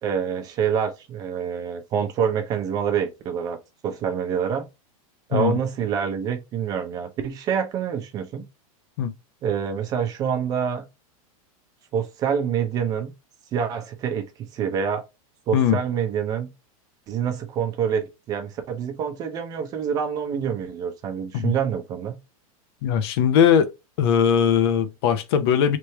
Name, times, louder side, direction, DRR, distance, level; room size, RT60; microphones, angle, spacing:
voice 1, 0.0-3.6 3.8-4.7 5.3-8.4 9.4-10.9 11.9-13.1 13.5-15.0 15.5-16.5 17.1-22.2, right 7 dB, 20° right, 0.7 m, -26 dB
voice 2, 22.8-23.7 24.0-25.8, left 8 dB, 45° left, 0.7 m, -20 dB
3.4 x 3.2 x 4.3 m
supercardioid pair, 175°, 18 cm